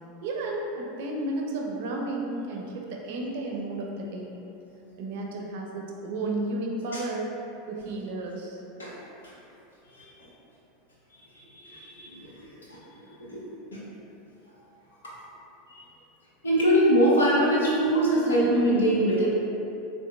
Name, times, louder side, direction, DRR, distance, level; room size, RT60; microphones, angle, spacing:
voice 1, 0.2-4.4 5.0-7.3 7.7-8.6 11.3-11.4 11.7-11.8, right 2 dB, 65° right, 0 dB, 0.5 m, -32 dB
voice 2, 11.7-12.1 13.3-13.4 13.7-13.8 16.4-19.3, equal, 90° left, -6 dB, 0.7 m, -22 dB
3.7 x 2.6 x 2.2 m, 2.8 s
hypercardioid pair, 90°, 0 cm